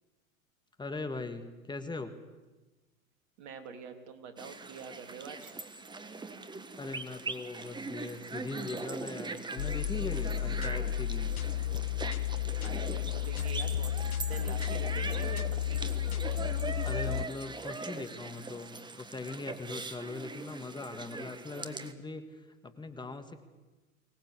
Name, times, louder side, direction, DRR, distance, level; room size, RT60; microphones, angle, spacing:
voice 1, 0.8-2.2 6.8-11.4 16.8-23.4, left 3 dB, 10° left, 7 dB, 1.9 m, -40 dB
voice 2, 3.4-5.5 12.6-16.0, right 6 dB, 55° right, 6 dB, 3.5 m, -46 dB
sound 1, 4.4-21.9, right 3 dB, 10° right, 1.4 m, -41 dB
sound 2, 9.6-17.3, left 11 dB, 90° left, 0.7 m, -32 dB
24.0 x 19.0 x 8.6 m, 1.2 s
hypercardioid pair, 100°, 42 cm